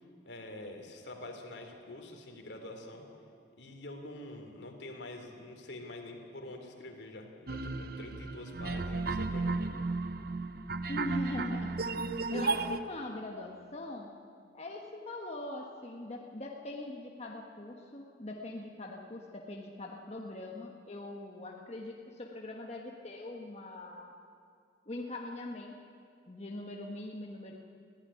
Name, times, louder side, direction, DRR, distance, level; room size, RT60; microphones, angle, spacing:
voice 1, 0.2-3.1 3.6-9.7, left 1 dB, 75° left, 4 dB, 3.0 m, -46 dB
sound 1, 7.5-12.8, right 3 dB, 55° right, 0.8 m, -34 dB
voice 2, 10.9-11.8 12.3-14.1 14.5-24.1 24.9-25.8 26.2-27.6, left 1 dB, 35° left, 0 dB, 1.4 m, -41 dB
22.5 x 15.5 x 9.9 m, 2.3 s
head